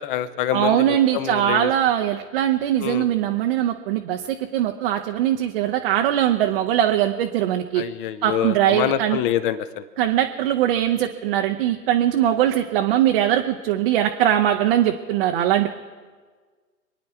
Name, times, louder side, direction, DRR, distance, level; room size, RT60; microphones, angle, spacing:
voice 1, 0.0-0.8 1.1-1.7 2.8-3.0 7.8-9.8, left 11 dB, 30° left, 13 dB, 0.9 m, -25 dB
voice 2, 0.5-7.8 8.2-9.2 10.0-15.7, right 11 dB, 35° right, 4 dB, 0.8 m, -21 dB
27.0 x 9.6 x 4.5 m, 1.5 s
figure-of-eight pair, 120°, 50 cm